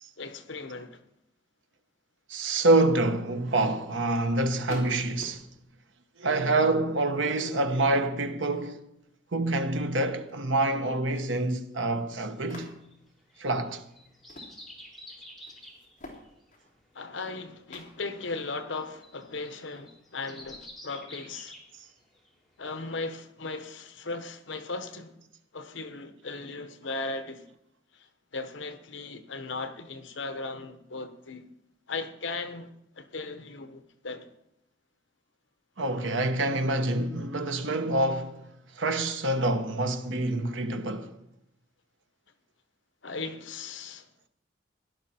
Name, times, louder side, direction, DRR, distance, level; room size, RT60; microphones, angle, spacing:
voice 1, 0.2-1.0 16.9-21.5 22.6-25.2 25.5-27.5 27.9-28.1 28.3-31.5 31.9-34.3 43.0-44.3, left 3 dB, 80° left, 1.1 m, -37 dB
voice 2, 2.3-5.4 6.2-8.8 9.3-12.8 13.4-13.8 35.8-38.4 38.7-41.2, right 2 dB, 85° right, 1.1 m, -26 dB
sound 1, 4.7-5.7 6.8-7.6 8.0-8.6 9.0-9.1 9.5-10.6 10.9-11.6 12.5-13.1 14.0-14.6 15.0-15.1 15.4-17.3 17.7-18.1 18.6-19.2 19.7-19.8 20.4-22.1, left 1 dB, 40° left, 3.3 m, -48 dB
sound 2, 12.3-22.3 22.7-22.8, left 1 dB, ahead, 3.1 m, -49 dB
17.0 x 11.5 x 4.3 m
head